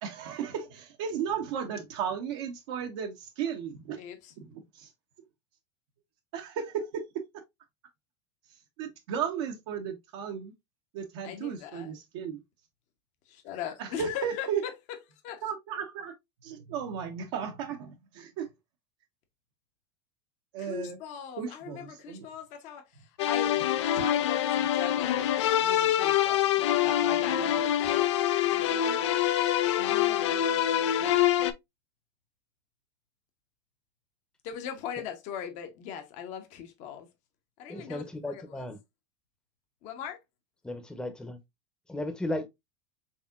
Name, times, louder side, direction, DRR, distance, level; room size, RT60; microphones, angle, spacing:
voice 1, 0.0-4.0 4.4-4.9 6.3-7.0 8.5-10.5 10.9-12.4 13.8-14.6 15.4-16.1 16.4-18.5 20.5-21.0 21.4-22.3, right 7 dB, 70° right, 0.8 m, -35 dB
voice 2, 4.0-4.3 11.2-11.9 13.3-14.7 15.2-15.4 20.6-22.9 23.3-23.6 23.9-25.3 25.6-26.5 26.8-28.1 28.5-29.0 29.8-30.9 34.4-37.1 37.6-38.4 39.8-40.2, left 8 dB, 55° left, 1.0 m, -39 dB
sound 1, 23.2-31.5, left 11 dB, 80° left, 0.4 m, -25 dB
voice 3, 37.7-38.8 40.6-41.4 41.9-42.5, left 1 dB, 5° left, 0.7 m, -35 dB
4.1 x 3.5 x 2.3 m
hypercardioid pair, 105°, 15 cm